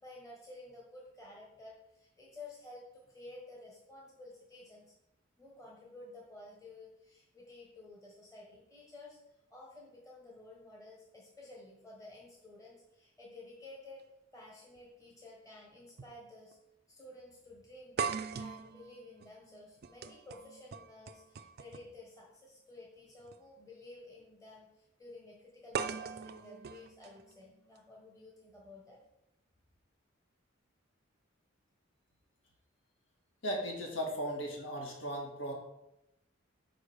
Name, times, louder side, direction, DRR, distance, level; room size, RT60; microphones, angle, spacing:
voice 1, 0.0-4.9 5.4-9.2 9.5-14.0 14.3-16.6 17.0-29.0, left 2 dB, 15° left, -4 dB, 1.3 m, -53 dB
sound 1, 14.8-14.9 16.0-16.2 16.5-16.6 18.0-22.0 23.2-23.4 25.7-27.8, right 6 dB, 50° right, 0.4 m, -40 dB
voice 2, 33.4-35.5, equal, 70° left, -1 dB, 1.8 m, -37 dB
5.1 x 5.0 x 6.3 m, 0.87 s
head